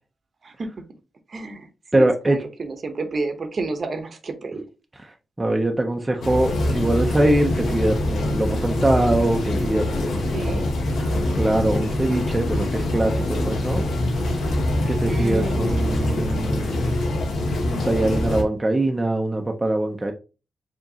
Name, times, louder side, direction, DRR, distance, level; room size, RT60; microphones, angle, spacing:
voice 1, 1.3-4.6 10.3-10.7 15.1-16.6, right 3 dB, 50° right, 0.8 m, -31 dB
voice 2, 1.9-2.4 5.4-10.6 11.3-13.9 14.9-17.0 17.6-20.1, right 1 dB, 15° right, 0.6 m, -23 dB
sound 1, 6.2-18.4, left 1 dB, 80° left, 0.9 m, -24 dB
4.7 x 2.9 x 2.8 m
cardioid pair, 90°, 0 cm